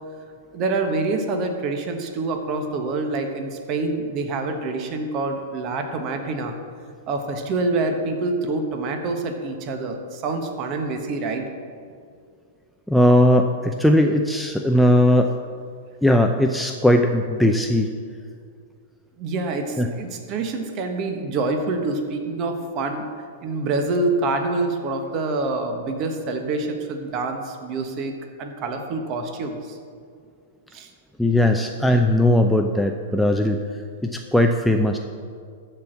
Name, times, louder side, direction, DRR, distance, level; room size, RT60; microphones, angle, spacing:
voice 1, 0.5-6.5 7.1-11.5 19.2-23.1 23.4-29.8 30.7-30.9, right 3 dB, 40° right, 5 dB, 1.2 m, -26 dB
voice 2, 12.9-15.3 16.0-17.9 19.8-19.9 31.2-33.6 34.0-35.0, left 1 dB, ahead, 3 dB, 0.5 m, -18 dB
13.0 x 4.4 x 7.8 m, 2.2 s
hypercardioid pair, 110°, 0 cm